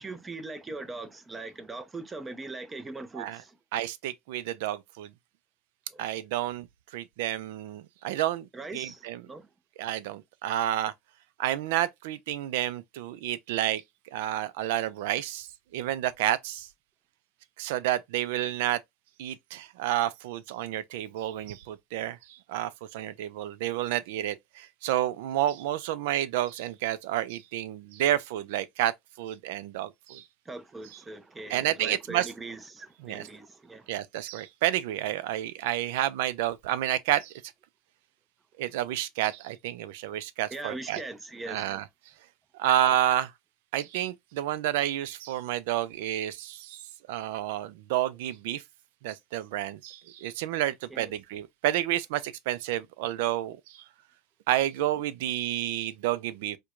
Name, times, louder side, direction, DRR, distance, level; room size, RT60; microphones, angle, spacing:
voice 1, 0.0-3.6 5.9-6.0 8.5-9.5 30.5-33.9 40.5-41.7 50.9-51.1, right 3 dB, 15° right, 0.6 m, -40 dB
voice 2, 3.7-5.1 6.0-6.7 6.9-8.5 8.7-9.2 9.8-10.9 11.4-13.8 14.1-15.5 15.7-16.7 17.6-18.8 19.2-30.2 31.5-32.3 33.0-33.3 33.9-37.3 38.6-41.0 41.5-41.8 42.6-43.3 43.7-46.8 47.1-48.6 49.0-53.8 54.5-56.6, right 13 dB, 85° right, 0.4 m, -30 dB
4.5 x 2.2 x 2.4 m
supercardioid pair, 125°, 0 cm